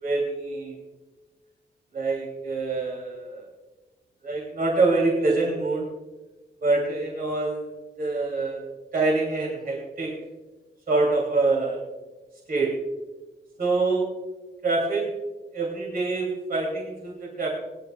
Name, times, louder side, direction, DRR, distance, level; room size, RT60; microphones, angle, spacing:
voice 1, 0.0-0.8 1.9-3.5 4.2-5.8 6.6-7.7 8.0-8.6 8.9-10.1 10.9-11.8 12.5-12.8 13.6-14.1 14.6-15.1 15.5-17.5, right 3 dB, 55° right, -1 dB, 2.8 m, -25 dB
21.5 x 10.5 x 2.4 m, 1.2 s
wide cardioid pair, 155°, 18 cm